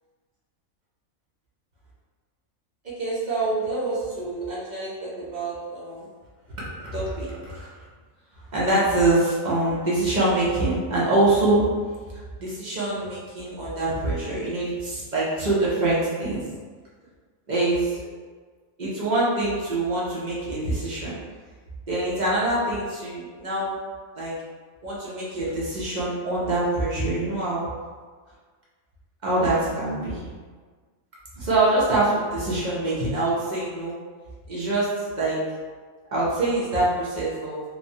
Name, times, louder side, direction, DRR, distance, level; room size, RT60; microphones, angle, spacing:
voice 1, 3.0-6.1 6.6-7.7 8.5-11.6 12.1-16.4 17.5-18.0 18.8-21.2 21.9-23.8 24.2-24.3 24.8-27.7 29.2-30.2 31.4-33.9 34.5-35.4 36.1-37.6, right 2 dB, 50° right, -7 dB, 0.5 m, -25 dB
2.9 x 2.1 x 2.6 m, 1.5 s
omnidirectional pair, 1.4 m